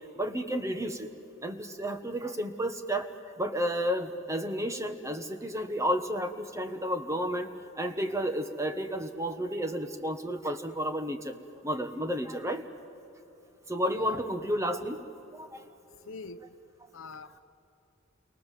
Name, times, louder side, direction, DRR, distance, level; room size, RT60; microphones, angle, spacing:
voice 1, 0.1-1.1 1.4-3.1 3.4-7.5 7.8-11.4 11.6-12.6 13.7-15.0 15.3-15.6, equal, 15° right, 7 dB, 1.4 m, -31 dB
voice 2, 16.1-16.4 16.9-17.4, left 4 dB, 70° left, 11 dB, 1.0 m, -43 dB
29.5 x 23.5 x 7.7 m, 2.9 s
head